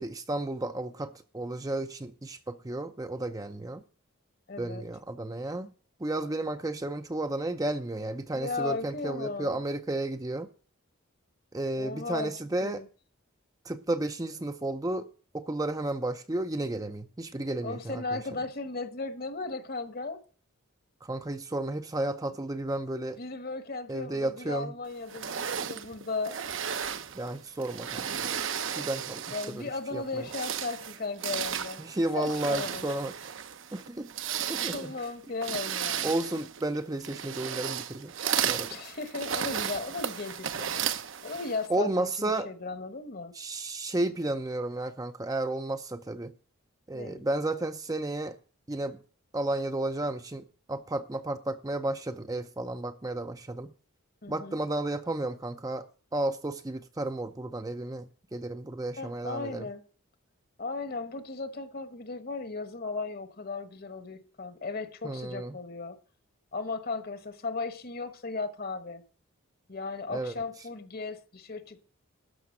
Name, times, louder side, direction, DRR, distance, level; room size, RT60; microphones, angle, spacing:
voice 1, 0.0-3.8 4.6-5.7 6.0-10.5 11.5-12.8 13.6-15.1 15.3-18.2 21.0-23.2 23.9-24.7 27.1-28.4 28.8-30.3 31.8-33.1 33.7-34.1 34.5-34.9 36.0-38.1 38.4-38.8 41.7-42.5 43.3-46.3 46.9-48.4 48.7-49.0 49.3-53.7 54.3-55.9 56.1-59.7 65.0-65.6 70.1-70.3, right 2 dB, 15° right, 0.5 m, -32 dB
voice 2, 4.5-4.8 8.3-9.6 11.8-12.3 12.6-12.9 17.6-20.2 23.2-26.4 29.3-32.8 34.6-36.1 38.6-40.8 41.2-43.3 46.9-47.2 54.2-54.6 59.0-59.8 60.6-66.0 66.5-69.0 69.7-71.8, left 3 dB, 45° left, 1.2 m, -36 dB
sound 1, 25.1-29.7 30.1-41.7, right 8 dB, 60° right, 0.8 m, -34 dB
12.5 x 5.8 x 7.7 m
head